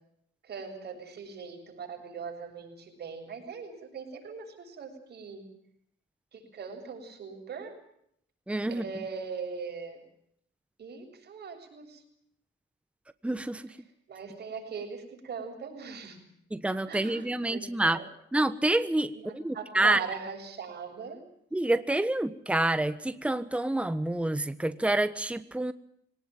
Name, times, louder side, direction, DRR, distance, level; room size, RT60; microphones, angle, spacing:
voice 1, 0.4-5.4 6.3-7.7 8.7-10.1 10.8-12.0 14.1-16.2 16.9-18.1 19.1-21.2, right 5 dB, 55° right, 3 dB, 7.7 m, -40 dB
voice 2, 8.5-8.8 13.2-13.7 16.5-18.0 18.3-20.0 21.5-25.7, right 1 dB, 5° right, 12 dB, 1.3 m, -28 dB
23.5 x 19.0 x 9.2 m, 0.72 s
cardioid pair, 90°, 20 cm